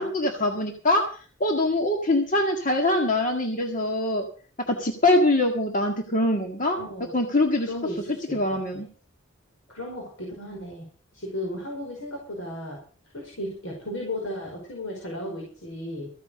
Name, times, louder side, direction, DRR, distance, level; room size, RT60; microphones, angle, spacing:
voice 1, 0.0-4.3 4.7-6.8 7.1-7.7 8.3-8.9, left 1 dB, 40° left, 2 dB, 1.8 m, -23 dB
voice 2, 6.8-7.1 7.7-8.8 9.7-10.9 11.1-12.8 13.1-16.1, left 1 dB, 75° left, -1 dB, 5.3 m, -35 dB
15.0 x 9.0 x 6.6 m, 0.42 s
head